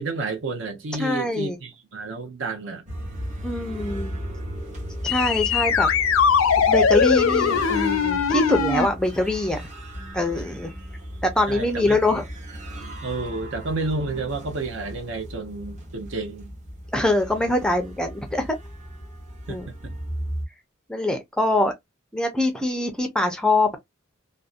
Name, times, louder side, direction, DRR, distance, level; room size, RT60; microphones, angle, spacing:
voice 1, 0.0-2.8 11.5-12.0 13.0-16.5 19.5-20.0, right 3 dB, 65° right, 0.7 m, -31 dB
voice 2, 1.0-1.6 3.4-4.1 5.0-5.9 6.7-9.7 10.1-10.7 11.2-12.2 16.9-18.5 19.5-19.7 20.9-21.7 22.1-23.8, left 1 dB, 5° left, 0.4 m, -23 dB
sound 1, 2.9-20.5, equal, 35° right, 0.9 m, -36 dB
sound 2, 5.0-8.9, left 6 dB, 85° left, 0.5 m, -20 dB
2.5 x 2.1 x 2.4 m
head